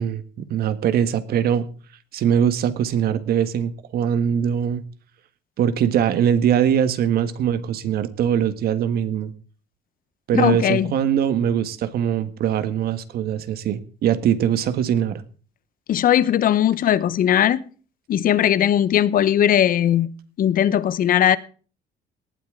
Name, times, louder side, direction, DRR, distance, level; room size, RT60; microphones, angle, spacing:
voice 1, 0.0-1.7 2.1-4.8 5.6-9.3 10.3-15.2, right 9 dB, 65° right, 1.5 m, -22 dB
voice 2, 10.3-10.9 15.9-17.6 18.1-20.1 20.4-21.4, left 10 dB, 55° left, 0.9 m, -18 dB
18.5 x 12.5 x 3.8 m
cardioid pair, 110°, 17 cm